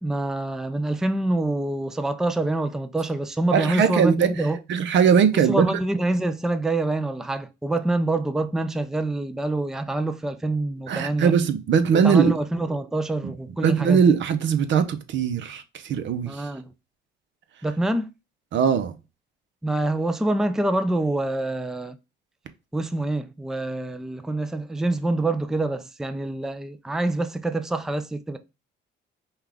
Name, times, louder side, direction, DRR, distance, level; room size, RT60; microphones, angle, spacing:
voice 1, 0.0-4.6 5.3-11.3 12.0-14.0 16.3-16.7 17.6-18.1 19.6-22.0 22.7-28.4, right 2 dB, ahead, 0.4 m, -26 dB
voice 2, 3.5-4.3 4.7-5.8 10.9-12.3 13.2-13.3 13.6-16.4 18.5-18.9, right 7 dB, 70° right, 0.7 m, -20 dB
5.5 x 2.4 x 3.3 m
cardioid pair, 90°, 20 cm